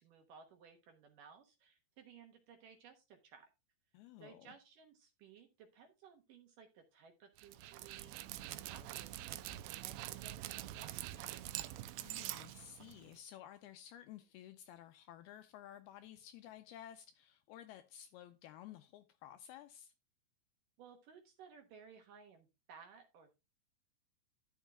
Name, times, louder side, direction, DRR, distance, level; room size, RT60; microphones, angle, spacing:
voice 1, 0.0-3.5 4.2-11.5 20.8-23.4, right 6 dB, 65° right, 2.4 m, -59 dB
voice 2, 3.9-4.5 12.0-19.9, left 11 dB, 85° left, 2.3 m, -54 dB
Dog, 7.4-13.2, right 15 dB, 85° right, 2.8 m, -45 dB
12.0 x 8.2 x 2.3 m
omnidirectional pair, 5.0 m